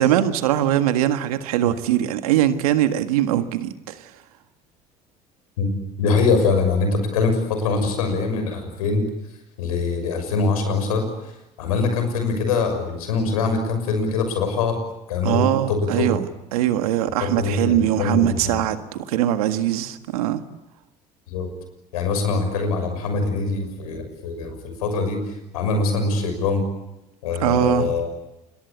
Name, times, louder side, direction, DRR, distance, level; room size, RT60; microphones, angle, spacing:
voice 1, 0.0-4.1 15.2-16.2 16.5-20.4 27.4-27.9, right 12 dB, 85° right, 9 dB, 1.7 m, -21 dB
voice 2, 6.0-9.1 9.6-11.3 11.6-14.8 15.1-16.1 17.2-18.6 21.3-21.5 21.9-26.6 27.2-28.1, left 4 dB, 85° left, 7 dB, 6.2 m, -23 dB
28.5 x 22.5 x 8.5 m, 0.94 s
hypercardioid pair, 70°, 18 cm